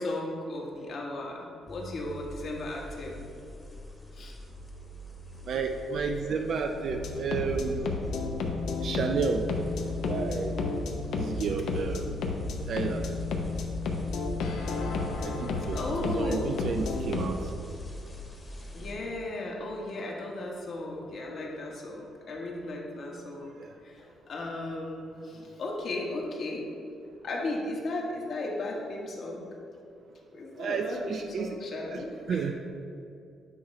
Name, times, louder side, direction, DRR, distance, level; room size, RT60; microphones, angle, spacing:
voice 1, 0.0-3.3 4.1-4.3 15.7-16.6 18.7-23.5 23.8-26.6 27.2-29.5 30.3-32.5, left 2 dB, 60° left, -1 dB, 1.2 m, -35 dB
sound 1, 1.7-18.9, left 1 dB, 25° left, 1.1 m, -45 dB
voice 2, 5.4-7.9 8.8-9.4 10.1-10.6 11.2-12.1 12.7-13.0 15.2-17.5 19.0-19.1 23.6-23.7 30.6-31.6 31.9-32.5, right 5 dB, 65° right, 4 dB, 0.4 m, -31 dB
sound 2, 6.9-17.3, left 3 dB, 80° left, 0.7 m, -32 dB
8.3 x 3.2 x 4.8 m, 2.5 s
cardioid pair, 90°, 0 cm